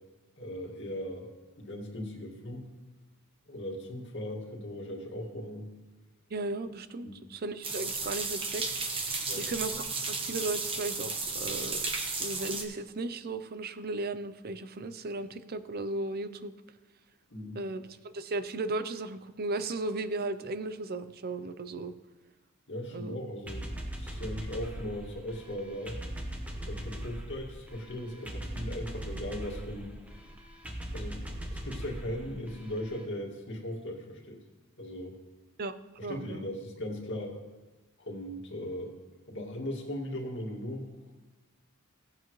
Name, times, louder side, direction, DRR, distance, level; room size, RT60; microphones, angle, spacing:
voice 1, 0.4-1.3 1.6-2.7 3.5-5.7 7.0-7.2 9.2-9.4 17.3-17.6 22.7-23.7 24.0-26.0 26.7-30.0 30.9-34.4 34.8-35.2 36.0-37.4 38.0-38.9 39.3-41.1, left 1 dB, 60° left, 0 dB, 2.1 m, -38 dB
voice 2, 6.3-8.7 9.0-11.8 12.2-16.5 17.5-21.9 22.9-23.2 35.6-35.7 36.0-36.5, right 2 dB, 45° right, 12 dB, 0.6 m, -36 dB
sound 1, 7.6-12.6, right 4 dB, 25° right, 1.1 m, -34 dB
sound 2, 23.5-33.0, right 1 dB, 5° right, 1.2 m, -40 dB
17.0 x 8.5 x 3.2 m, 1.2 s
head